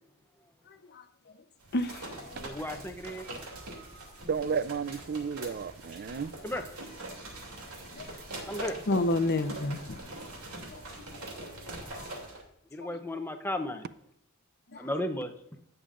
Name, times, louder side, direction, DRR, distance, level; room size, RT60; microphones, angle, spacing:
sound 1, 1.6-12.4, right 2 dB, 70° right, 2.7 m, -43 dB
voice 1, 1.7-2.5 6.1-6.2 8.0-8.1 8.9-10.1 10.7-10.8 11.4-12.1 14.7-14.9, left 2 dB, 45° left, 0.8 m, -31 dB
voice 2, 2.4-3.2 5.4-5.5 6.4-6.6 8.5-8.8 12.7-13.8 14.8-15.3, left 1 dB, 10° left, 0.7 m, -34 dB
voice 3, 4.3-6.3, right 6 dB, 45° right, 0.4 m, -32 dB
17.5 x 6.9 x 2.5 m
head